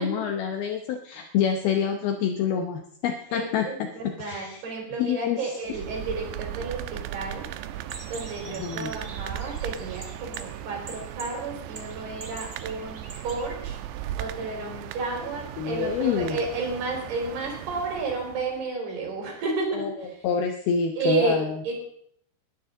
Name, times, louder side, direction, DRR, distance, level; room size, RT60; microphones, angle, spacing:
voice 1, 0.0-3.7 4.2-4.6 5.0-5.5 8.5-8.9 15.6-16.4 19.8-19.9 20.2-21.6, left 7 dB, 75° left, 5 dB, 2.6 m, -27 dB
voice 2, 3.3-7.5 8.1-20.2 21.0-21.7, right 3 dB, 65° right, 0 dB, 6.3 m, -32 dB
sound 1, 5.7-18.6, right 11 dB, 85° right, 2.8 m, -37 dB
sound 2, 7.9-13.5, right 3 dB, 40° right, 1.2 m, -45 dB
21.5 x 13.0 x 3.8 m, 0.69 s
omnidirectional pair, 4.9 m